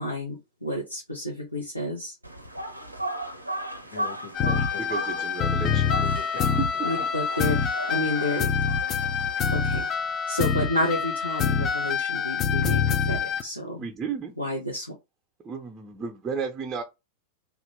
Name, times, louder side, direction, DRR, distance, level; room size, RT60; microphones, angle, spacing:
voice 1, 0.0-2.2 6.8-8.5 9.5-9.9 10.3-13.8 14.4-14.9, left 1 dB, 85° left, 0.8 m, -30 dB
sound 1, 2.2-9.9, right 1 dB, 85° right, 0.5 m, -36 dB
voice 2, 3.8-5.3 5.7-6.9, left 5 dB, 50° left, 1.1 m, -42 dB
sound 2, 4.3-13.4, left 6 dB, 30° left, 0.4 m, -26 dB
voice 3, 4.8-5.9 6.6-6.7 13.8-14.3 15.4-16.8, right 5 dB, 20° right, 0.6 m, -33 dB
2.8 x 2.4 x 3.1 m
figure-of-eight pair, 90°, 0 cm